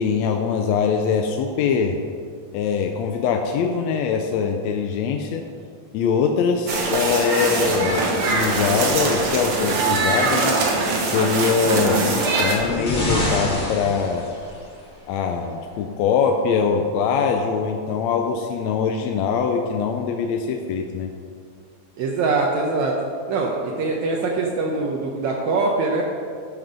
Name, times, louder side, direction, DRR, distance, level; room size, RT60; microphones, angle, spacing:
voice 1, 0.0-2.0 2.5-5.4 5.9-10.5 11.0-14.3 15.1-21.1, left 6 dB, 75° left, 4 dB, 1.7 m, -22 dB
sound 1, 6.7-12.6, right 3 dB, 55° right, 2.0 m, -22 dB
sound 2, 11.6-14.8 15.7-15.8, left 1 dB, 20° left, 1.3 m, -28 dB
voice 2, 22.0-22.9 23.3-26.1, right 3 dB, 75° right, -1 dB, 2.0 m, -23 dB
12.5 x 5.9 x 5.2 m, 2.2 s
omnidirectional pair, 3.5 m